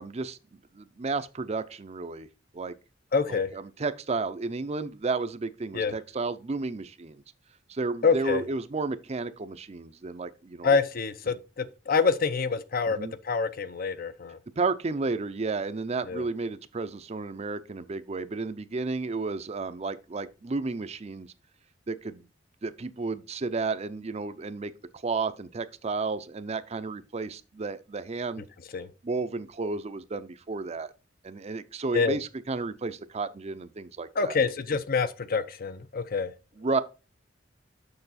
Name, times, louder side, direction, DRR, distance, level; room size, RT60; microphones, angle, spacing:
voice 1, 0.0-2.3 2.5-2.7 3.3-7.2 7.7-10.8 12.9-13.1 14.6-21.3 21.9-22.3 22.6-28.4 29.0-30.9 31.2-34.4 36.6-36.8, right 3 dB, 35° right, 0.5 m, -32 dB
voice 2, 3.1-3.5 5.7-5.9 8.0-8.4 10.6-13.0 13.2-14.4 16.1-16.2 28.7-28.9 31.9-32.2 34.2-36.3, left 5 dB, 50° left, 0.6 m, -26 dB
6.8 x 5.8 x 4.1 m
head